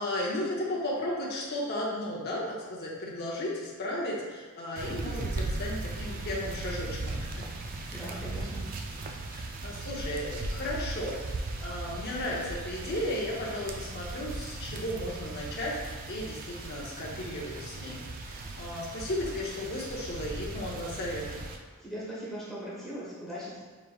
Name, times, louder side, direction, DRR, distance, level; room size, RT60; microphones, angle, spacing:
voice 1, 0.0-7.5 7.9-8.0 9.3-11.2 11.6-18.0 18.3-21.4, left 1 dB, 45° left, -4 dB, 0.7 m, -35 dB
sound 1, 4.8-21.6, right 2 dB, 40° right, 0.3 m, -38 dB
voice 2, 7.9-8.6 9.0-9.3 21.8-23.6, equal, ahead, -9 dB, 1.1 m, -40 dB
5.0 x 3.0 x 2.3 m, 1.4 s
head